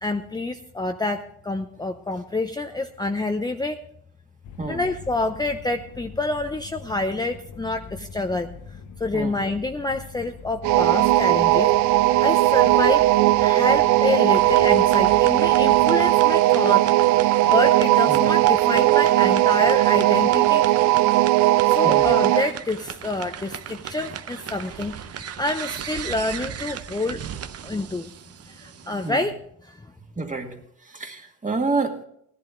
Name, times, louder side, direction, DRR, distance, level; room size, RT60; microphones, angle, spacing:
voice 1, 0.0-3.8 4.7-8.5 9.0-11.7 12.2-13.1 13.4-17.1 17.4-20.7 21.7-27.2 27.6-28.1 28.5-29.3 29.6-29.9, left 2 dB, 15° left, 6 dB, 0.7 m, -27 dB
sound 1, 4.4-16.2, left 6 dB, 80° left, 1.0 m, -43 dB
sound 2, 10.6-22.5, right 16 dB, 75° right, 0.5 m, -18 dB
sound 3, 14.3-29.1, right 9 dB, 55° right, 0.8 m, -37 dB
voice 2, 21.8-22.2 29.0-29.2 30.2-30.6 30.8-32.0, right 3 dB, 25° right, 3 dB, 1.9 m, -28 dB
16.0 x 11.0 x 3.8 m, 0.69 s
cardioid pair, 90°, 30 cm